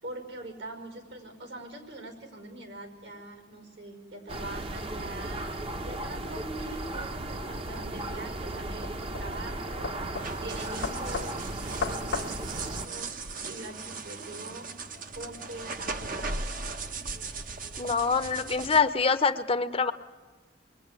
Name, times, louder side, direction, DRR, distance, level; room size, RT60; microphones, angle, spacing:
voice 1, 0.0-13.1 13.4-14.7 15.1-16.4, right 2 dB, 70° right, 4 dB, 5.6 m, -43 dB
sound 1, 4.3-12.9, right 1 dB, 30° right, 1.1 m, -36 dB
sound 2, 8.8-13.3, left 4 dB, 80° left, 1.1 m, -38 dB
sound 3, 10.2-18.8, right 4 dB, 50° right, 1.3 m, -38 dB
voice 2, 17.8-19.9, left 5 dB, 30° left, 10 dB, 0.8 m, -25 dB
27.5 x 22.5 x 9.7 m, 1.4 s
head